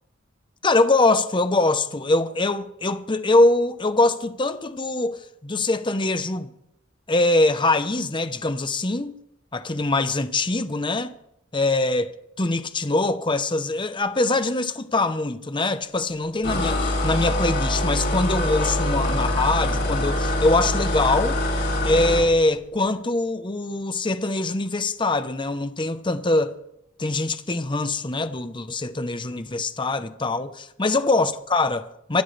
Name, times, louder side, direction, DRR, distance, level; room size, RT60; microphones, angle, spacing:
voice 1, 0.6-6.5 7.1-9.1 9.5-11.1 11.5-21.4 21.8-26.5 27.0-32.2, left 2 dB, 25° left, 0.9 m, -23 dB
sound 1, 16.4-22.3, left 1 dB, 60° left, 6.4 m, -24 dB
25.5 x 12.0 x 3.3 m
head